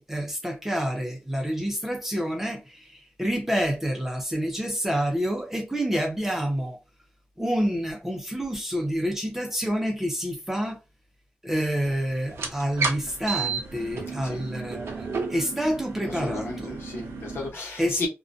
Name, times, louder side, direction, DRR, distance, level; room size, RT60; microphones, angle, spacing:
voice 1, 0.0-6.8 7.4-10.8 11.4-16.8 17.8-18.1, equal, 10° right, 0.4 m, -28 dB
sound 1, 12.3-17.5, right 4 dB, 80° right, 0.6 m, -32 dB
voice 2, 16.0-18.1, left 2 dB, 60° left, 1.0 m, -34 dB
2.4 x 2.1 x 2.5 m
wide cardioid pair, 170°, 4 cm